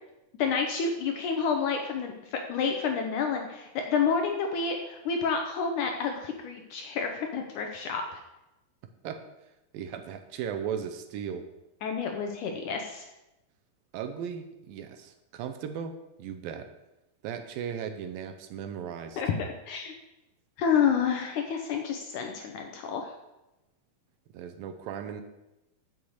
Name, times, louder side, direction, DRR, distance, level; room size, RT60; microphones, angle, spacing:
voice 1, 0.4-8.2 11.8-13.1 19.2-19.3 19.7-19.9 20.6-23.1, left 6 dB, 75° left, 3 dB, 2.0 m, -29 dB
voice 2, 9.7-11.4 13.9-16.7 17.2-19.2 24.3-25.2, right 8 dB, 75° right, 8 dB, 2.4 m, -37 dB
7.1 x 6.5 x 7.9 m, 0.95 s
omnidirectional pair, 4.3 m